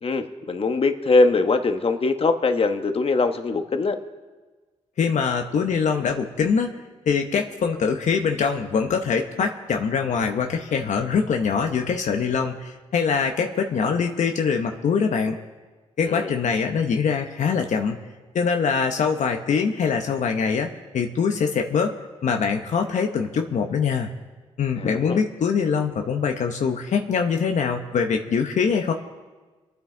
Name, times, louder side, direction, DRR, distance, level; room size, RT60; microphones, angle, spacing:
voice 1, 0.0-4.0 16.0-16.4 24.8-25.2, left 3 dB, 45° left, 7 dB, 1.2 m, -22 dB
voice 2, 5.0-6.8 7.1-15.4 16.0-18.0 18.3-21.9 22.2-24.1 24.6-28.9, left 6 dB, 70° left, 3 dB, 1.0 m, -23 dB
24.0 x 9.5 x 3.9 m, 1.3 s
cardioid pair, 55°, 13 cm